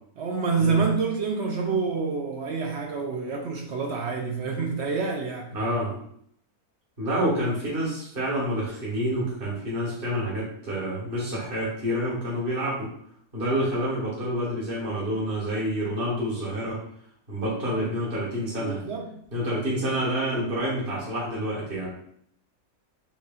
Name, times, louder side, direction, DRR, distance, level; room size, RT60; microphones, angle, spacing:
voice 1, 0.2-5.5 18.6-19.2, right 4 dB, 65° right, 1 dB, 0.7 m, -27 dB
voice 2, 5.5-5.9 7.0-12.9 13.3-16.8 17.3-18.8 19.3-21.9, equal, 35° right, -6 dB, 1.7 m, -28 dB
5.4 x 3.2 x 2.4 m, 0.67 s
omnidirectional pair, 1.6 m